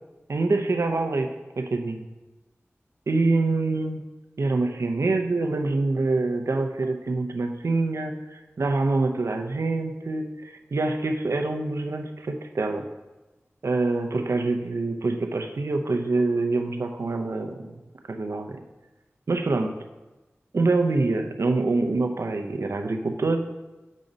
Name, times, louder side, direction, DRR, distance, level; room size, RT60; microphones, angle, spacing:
voice 1, 0.3-1.3 1.6-2.1 3.1-4.0 4.4-12.9 13.6-17.7 18.1-18.6 19.3-19.8 20.5-23.5, right 3 dB, 75° right, 5 dB, 0.6 m, -25 dB
7.4 x 5.2 x 3.9 m, 1.1 s
wide cardioid pair, 60°, 5 cm